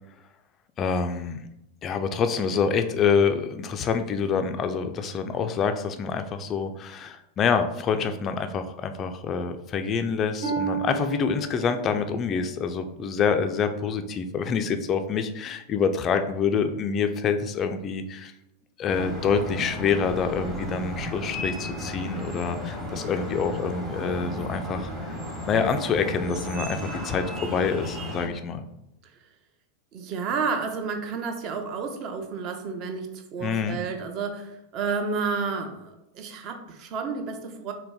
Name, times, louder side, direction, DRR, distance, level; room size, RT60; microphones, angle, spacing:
voice 1, 0.8-1.4 1.8-18.3 18.8-25.2 25.5-28.6 33.4-33.8, left 6 dB, 30° left, 7 dB, 0.3 m, -26 dB
Harp, 10.4-14.2 14.7-15.1 15.7-15.9, right 6 dB, 65° right, 0.8 m, -34 dB
sound 1, 18.9-28.3, equal, 20° right, 1.1 m, -34 dB
voice 2, 29.9-37.7, right 5 dB, 40° right, 5 dB, 0.6 m, -31 dB
3.9 x 2.2 x 3.5 m, 0.85 s
figure-of-eight pair, 90°, 0 cm